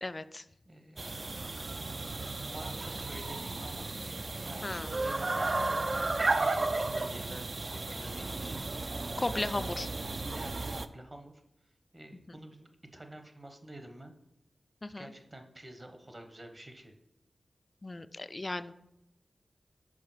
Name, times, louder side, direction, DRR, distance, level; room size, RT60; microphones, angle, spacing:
voice 1, 0.0-0.4 4.6-4.9 9.2-9.9 12.3-12.4 14.8-15.1 17.8-18.7, left 2 dB, 30° left, 13 dB, 0.3 m, -35 dB
voice 2, 0.7-1.7 2.3-3.9 4.4-5.8 6.2-8.6 9.1-9.7 10.3-11.3 11.9-14.1 15.0-16.9, right 1 dB, 25° right, 6 dB, 0.9 m, -49 dB
sound 1, 1.0-10.9, right 2 dB, 45° right, 0.4 m, -34 dB
5.0 x 4.8 x 5.6 m, 0.87 s
wide cardioid pair, 80°, 0 cm